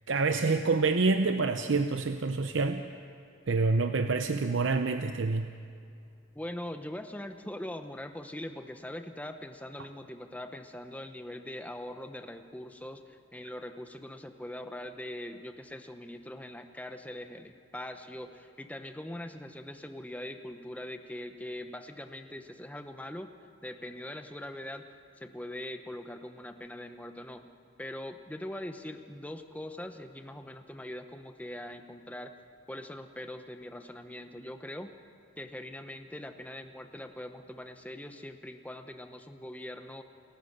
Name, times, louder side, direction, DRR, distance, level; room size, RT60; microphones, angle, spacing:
voice 1, 0.1-2.8 3.5-5.5, right 3 dB, 75° right, 8 dB, 0.7 m, -27 dB
voice 2, 6.3-23.3 23.6-24.8 25.2-27.5 27.8-32.3 32.7-34.9 35.4-40.0, left 1 dB, 5° left, 7 dB, 0.8 m, -42 dB
29.0 x 14.5 x 6.7 m, 2.4 s
head